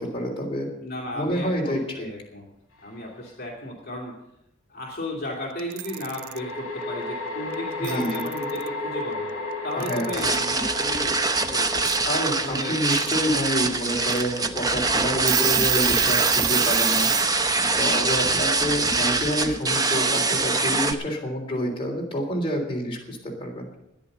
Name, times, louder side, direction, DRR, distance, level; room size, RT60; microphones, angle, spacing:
voice 1, 0.0-0.7 1.1-2.1 7.8-8.2 9.8-10.2 12.0-17.1 17.7-23.7, equal, 25° left, -1 dB, 3.3 m, -28 dB
voice 2, 0.8-2.5 2.8-4.2 4.7-9.3 9.6-11.9 12.4-12.8 17.9-18.4, left 1 dB, 45° left, -1 dB, 2.7 m, -34 dB
sound 1, 2.8-3.0 5.8-17.2, left 2 dB, 70° left, 2.7 m, -35 dB
Alarm / Clock, 5.6-6.4 7.5-7.6 7.8-8.7 9.8-10.4 11.8-12.0 12.7-13.1 13.6-13.7 14.1-14.2 14.7-14.8 15.1-17.3, right 16 dB, 80° right, 0.4 m, -28 dB
sound 2, 10.1-20.9, right 3 dB, 20° right, 0.8 m, -24 dB
14.0 x 10.0 x 6.8 m, 0.86 s
head